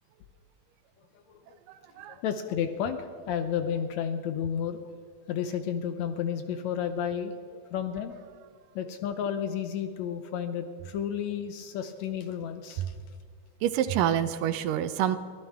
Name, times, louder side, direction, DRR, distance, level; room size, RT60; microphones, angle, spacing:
voice 1, 1.1-1.6 2.1-4.8 5.3-7.3 7.7-8.2 8.8-13.0, left 8 dB, 70° left, 8 dB, 1.8 m, -32 dB
voice 2, 1.7-2.2 12.8-12.9 13.6-15.2, right 10 dB, 85° right, 11 dB, 2.4 m, -27 dB
23.0 x 15.0 x 3.6 m, 2.1 s
omnidirectional pair, 3.7 m